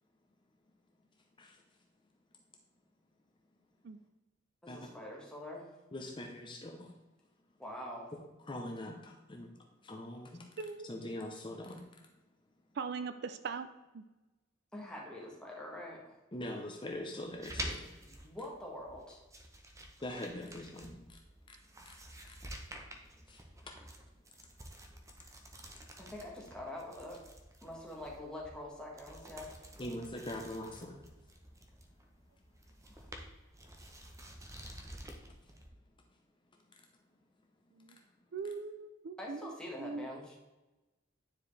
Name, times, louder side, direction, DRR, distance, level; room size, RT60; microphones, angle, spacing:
voice 1, 4.6-5.7 7.6-8.1 14.7-16.1 18.1-19.2 23.6-23.7 26.0-27.2 27.6-30.0 32.8-33.1 39.2-40.4, left 1 dB, 5° left, -3 dB, 1.6 m, -45 dB
voice 2, 5.9-6.9 8.5-9.5 9.8-10.5 10.8-11.9 16.3-17.9 20.0-21.2 21.5-21.6 21.8-22.0 22.3-22.4 23.3-23.4 29.8-31.0 35.4-35.5, left 1 dB, 25° left, 1 dB, 0.7 m, -43 dB
voice 3, 10.6-10.9 12.8-14.0 37.8-38.0 38.3-39.5 39.8-40.1, right 5 dB, 55° right, 11 dB, 0.4 m, -40 dB
sound 1, 17.2-35.7, right 1 dB, 15° right, 0.8 m, -49 dB
9.7 x 4.7 x 3.3 m, 1.1 s
head